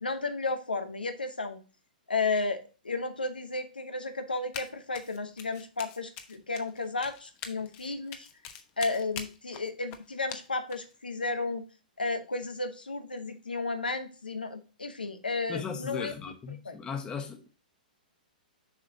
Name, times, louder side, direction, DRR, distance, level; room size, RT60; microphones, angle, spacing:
voice 1, 0.0-1.6 2.1-8.3 8.8-11.7 12.0-16.1 16.5-16.8, left 3 dB, 90° left, 0.9 m, -33 dB
Run, 4.5-4.7 4.9-10.9, left 8 dB, 40° left, 1.0 m, -43 dB
voice 2, 15.5-17.4, left 6 dB, 20° left, 1.2 m, -37 dB
7.2 x 5.1 x 2.7 m
figure-of-eight pair, 115°, 5 cm